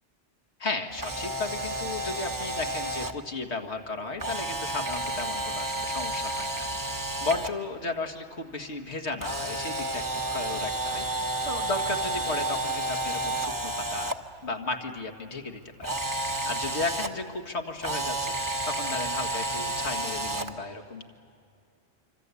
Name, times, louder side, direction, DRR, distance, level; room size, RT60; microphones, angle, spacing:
voice 1, 0.6-11.0 11.4-14.1 14.4-15.6 15.9-16.0 16.5-18.3 18.6-21.1, left 3 dB, 80° left, 4 dB, 2.1 m, -34 dB
Camera, 0.9-3.1 4.2-7.5 9.2-14.1 15.8-17.1 17.8-20.5, right 2 dB, 20° right, 1.1 m, -31 dB
26.5 x 25.5 x 8.4 m, 2.5 s
omnidirectional pair, 1.1 m